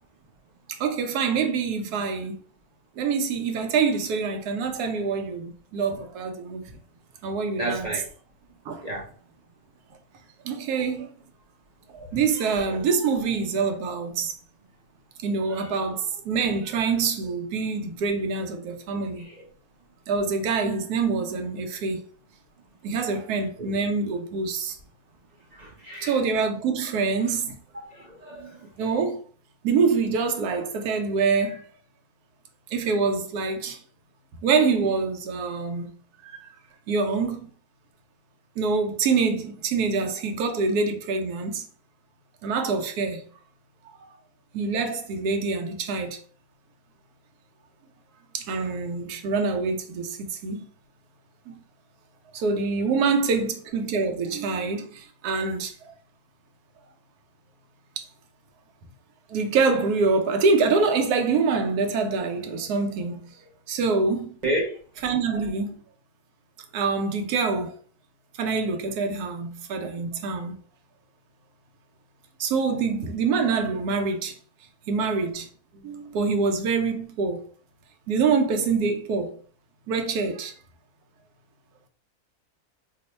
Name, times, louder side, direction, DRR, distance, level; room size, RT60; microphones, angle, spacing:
voice 1, 0.7-2.4 3.0-6.7 7.2-7.9 8.7-8.8 10.4-11.1 11.9-14.3 15.2-19.3 20.1-22.0 22.8-24.8 26.0-27.6 28.8-29.2 29.6-31.6 32.7-33.8 34.4-35.9 36.2-36.5 36.9-37.5 38.6-41.7 42.4-43.2 44.5-46.2 48.3-50.7 51.5-51.6 52.3-55.9 58.0-58.1 59.3-63.3 63.7-64.4 65.0-65.8 66.7-67.8 68.4-70.6 72.4-74.3 74.9-75.5 75.7-77.4 78.1-79.4 79.9-80.5, right 4 dB, 80° right, 1.1 m, -25 dB
voice 2, 7.6-8.0 8.8-9.1 23.6-23.7 25.5-26.1 27.7-28.6 64.4-64.7, right 1 dB, 50° right, 0.5 m, -30 dB
3.0 x 2.1 x 4.1 m
omnidirectional pair, 1.7 m